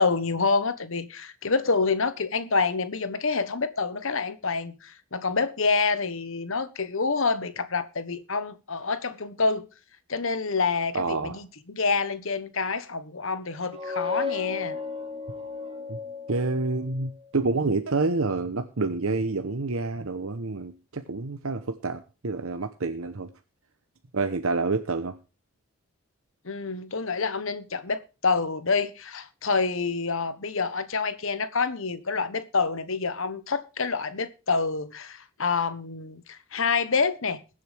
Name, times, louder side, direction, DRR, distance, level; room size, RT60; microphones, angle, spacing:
voice 1, 0.0-9.7 10.1-14.8 26.4-37.4, left 4 dB, 60° left, 1.1 m, -27 dB
voice 2, 10.9-11.4 15.9-16.0 16.3-23.3 24.1-25.2, right 3 dB, 70° right, 0.9 m, -28 dB
sound 1, 13.5-17.1, left 4 dB, 25° right, 1.7 m, -34 dB
21.0 x 7.8 x 3.4 m
head